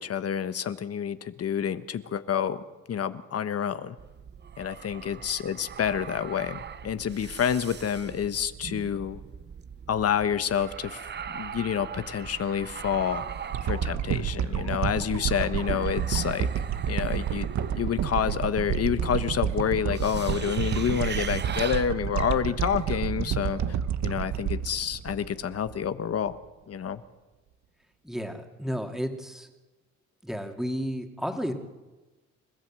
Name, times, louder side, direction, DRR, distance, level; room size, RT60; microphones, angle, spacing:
voice 1, 0.0-2.6 2.9-4.0 4.6-9.2 9.9-11.0 11.3-13.3 13.6-16.5 16.9-23.8 24.0-26.4 26.7-27.0, left 8 dB, 50° left, 12 dB, 1.2 m, -28 dB
sound 1, 4.0-22.8, right 7 dB, 35° right, 0.7 m, -41 dB
sound 2, 13.5-25.9 26.3-26.4, right 9 dB, 65° right, 1.2 m, -30 dB
voice 2, 28.0-29.5 30.2-31.5, equal, ahead, 4 dB, 2.6 m, -32 dB
29.5 x 14.0 x 7.6 m, 1.2 s
cardioid pair, 90°, 30 cm